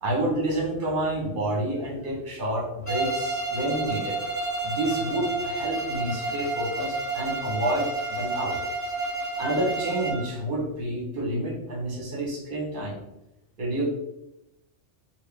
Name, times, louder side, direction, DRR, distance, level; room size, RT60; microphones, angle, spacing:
voice 1, 0.0-4.2 4.6-8.6 9.4-13.0 13.6-13.8, right 1 dB, 50° right, -2 dB, 1.1 m, -29 dB
Bowed string instrument, 2.9-10.3, right 2 dB, 15° left, 0.8 m, -30 dB
3.5 x 2.4 x 3.3 m, 0.90 s
omnidirectional pair, 1.3 m